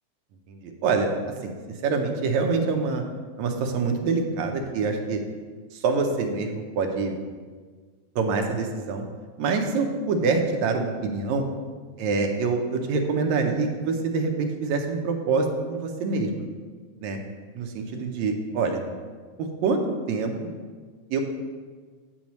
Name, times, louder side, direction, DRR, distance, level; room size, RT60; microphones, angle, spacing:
voice 1, 0.5-1.1 1.4-1.5 1.8-3.0 3.4-5.2 5.7-7.1 8.2-9.0 9.4-11.5 12.0-16.5 17.0-17.2 17.6-18.8 19.4-19.8 20.1-20.5 21.1-21.2, right 4 dB, 75° right, 3 dB, 2.0 m, -25 dB
8.6 x 7.9 x 3.1 m, 1.5 s
omnidirectional pair, 3.4 m